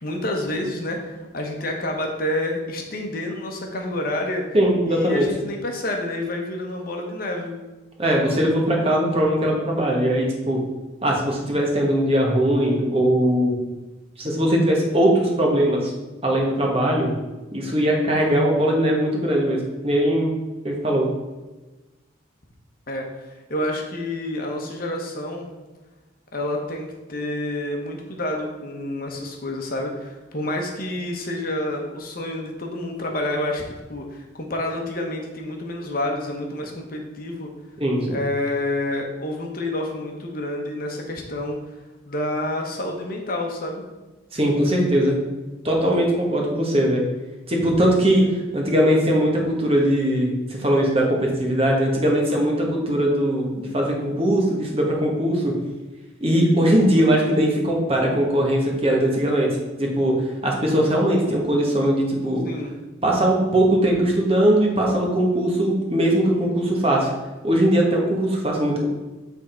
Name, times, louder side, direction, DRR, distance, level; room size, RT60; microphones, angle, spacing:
voice 1, 0.0-4.6 4.9-7.6 22.9-23.1 23.5-25.5 26.3-37.5 38.1-41.6 42.1-43.8 62.4-62.8, left 1 dB, 45° left, 2 dB, 1.0 m, -28 dB
voice 2, 4.5-5.2 8.0-10.6 11.0-13.5 14.2-15.9 16.2-17.1 17.5-20.4 20.6-21.0 37.8-38.2 44.3-45.2 45.6-47.0 47.5-48.2 48.5-55.5 56.2-59.5 59.8-60.1 60.4-62.4 63.0-67.1 67.4-68.8, right 1 dB, 30° right, -1 dB, 1.2 m, -20 dB
8.2 x 3.6 x 4.3 m, 1.2 s
head